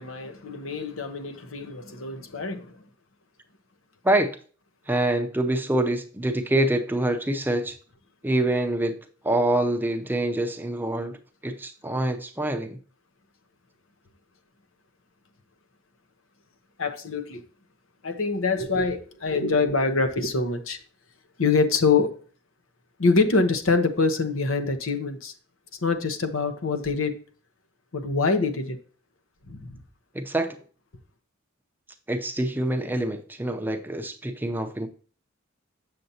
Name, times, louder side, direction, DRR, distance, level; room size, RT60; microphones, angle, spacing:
voice 1, 0.0-2.8 16.8-17.4 18.0-20.8 21.4-22.1 23.0-25.3 25.8-27.1 27.9-28.8 29.5-29.8, left 4 dB, 70° left, 0.9 m, -25 dB
voice 2, 4.9-7.8 8.2-9.0 9.2-11.2 11.4-12.8 30.1-30.6 32.1-34.9, right 1 dB, 10° right, 0.6 m, -25 dB
7.7 x 6.6 x 2.8 m
head